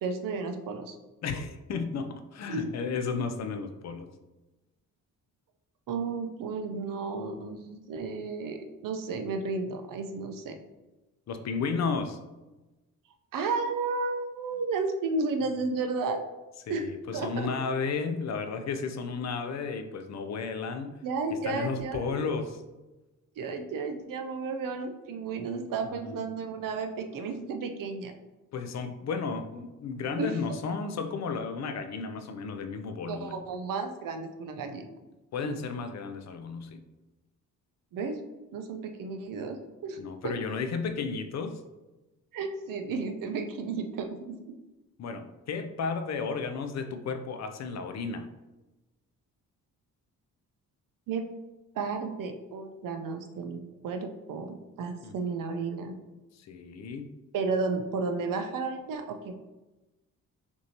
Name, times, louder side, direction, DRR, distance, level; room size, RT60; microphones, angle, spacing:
voice 1, 0.0-0.9 2.5-2.7 5.9-10.5 13.3-16.2 16.7-17.5 21.0-22.2 23.4-28.1 30.2-30.6 33.1-34.9 37.9-38.2 38.5-39.6 39.8-40.0 40.2-40.3 42.3-44.5 51.1-51.3 51.7-55.9 57.3-59.4, right 4 dB, 70° right, 6 dB, 0.6 m, -33 dB
voice 2, 1.2-4.1 11.3-12.2 16.7-21.0 21.4-22.6 26.0-26.1 28.5-33.4 35.3-36.8 40.0-41.6 45.0-48.3 55.0-55.1 56.3-57.1, left 5 dB, 50° left, 8 dB, 0.5 m, -33 dB
6.0 x 2.7 x 2.9 m, 1.1 s
cardioid pair, 95°, 34 cm